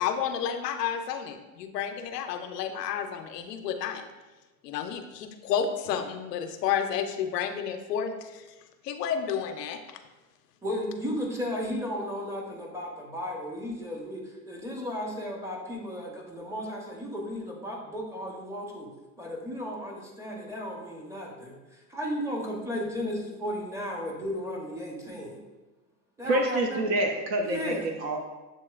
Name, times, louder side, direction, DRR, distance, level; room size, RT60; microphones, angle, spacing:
voice 1, 0.0-4.0 4.6-8.4 8.8-10.0, left 8 dB, 75° left, 7 dB, 0.6 m, -31 dB
voice 2, 10.6-18.9 19.2-25.4 26.2-26.9 27.4-27.9, equal, 5° right, -1 dB, 0.7 m, -34 dB
voice 3, 26.2-28.3, right 1 dB, 30° right, 2 dB, 0.4 m, -27 dB
7.2 x 2.9 x 2.3 m, 1.1 s
hypercardioid pair, 100°, 48 cm